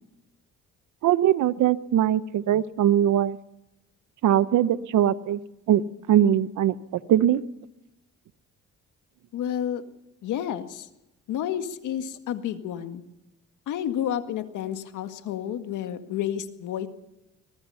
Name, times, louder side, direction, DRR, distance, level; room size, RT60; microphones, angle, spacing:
voice 1, 1.0-3.4 4.2-5.4 5.7-5.8 6.1-6.7 7.1-7.4, right 11 dB, 75° right, 15 dB, 0.9 m, -21 dB
voice 2, 9.3-9.8 10.2-10.9 11.3-13.0 13.7-16.9, left 10 dB, 85° left, 8 dB, 1.9 m, -30 dB
23.5 x 20.0 x 5.7 m, 0.92 s
cardioid pair, 90°, 30 cm